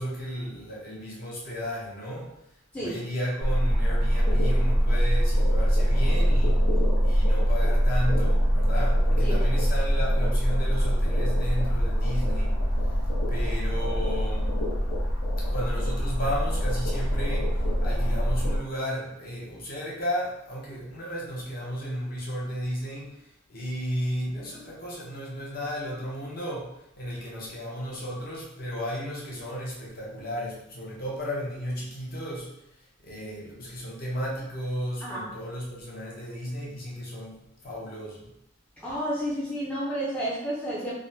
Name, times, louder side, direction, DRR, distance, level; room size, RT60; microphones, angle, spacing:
voice 1, 0.0-2.4 2.8-6.6 7.0-12.6 13.3-14.6 15.4-23.2 23.5-32.5 33.0-38.3, equal, 45° left, -4 dB, 0.7 m, -34 dB
voice 2, 2.7-3.1 9.2-9.4 35.0-35.3 38.8-40.9, right 1 dB, 5° left, -8 dB, 0.5 m, -31 dB
sound 1, 3.4-18.6, equal, 80° left, 0.8 m, -23 dB
3.4 x 2.1 x 2.6 m, 0.81 s
head